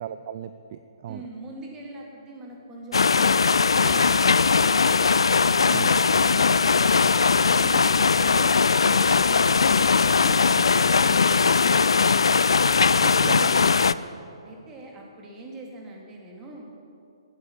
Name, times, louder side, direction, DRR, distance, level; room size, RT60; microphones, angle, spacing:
voice 1, 0.0-1.2 5.7-5.9 13.0-13.6, right 10 dB, 40° right, 11 dB, 0.5 m, -36 dB
voice 2, 1.1-5.0 7.9-12.1 14.4-16.7, right 2 dB, 20° right, -1 dB, 2.5 m, -42 dB
sound 1, 2.9-13.9, left 5 dB, 70° left, 0.4 m, -20 dB
sound 2, 3.5-10.0, left 1 dB, 5° left, 3.5 m, -44 dB
15.5 x 8.8 x 7.4 m, 2.6 s
figure-of-eight pair, 130°, 3 cm